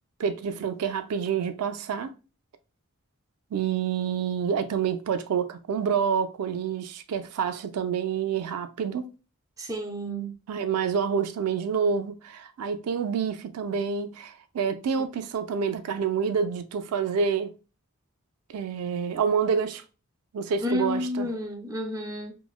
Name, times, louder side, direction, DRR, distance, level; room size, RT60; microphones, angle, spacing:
voice 1, 0.2-2.1 3.5-9.1 10.5-17.5 18.5-19.8 20.3-21.3, right 6 dB, 85° right, 0.4 m, -28 dB
voice 2, 9.6-10.3 20.6-22.4, left 1 dB, 15° right, 0.3 m, -30 dB
3.0 x 2.1 x 2.3 m
head